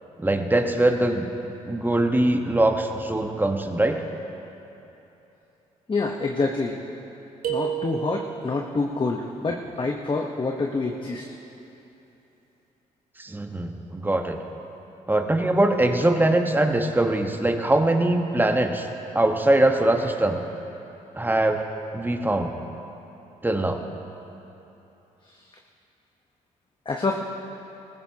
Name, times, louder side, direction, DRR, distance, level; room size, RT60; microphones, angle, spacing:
voice 1, 0.2-1.3 1.6-4.0 13.2-14.4 15.1-18.9 19.1-20.4 21.2-21.6 21.9-22.5 23.4-23.8, right 1 dB, 10° right, 4 dB, 1.3 m, -22 dB
voice 2, 5.9-6.8 7.5-11.3 25.2-25.5 26.8-27.2, left 3 dB, 30° left, 1 dB, 1.1 m, -27 dB
sound 1, 7.4-8.6, right 10 dB, 70° right, 2.3 m, -29 dB
19.0 x 15.5 x 2.9 m, 3.0 s
supercardioid pair, 60°, 16 cm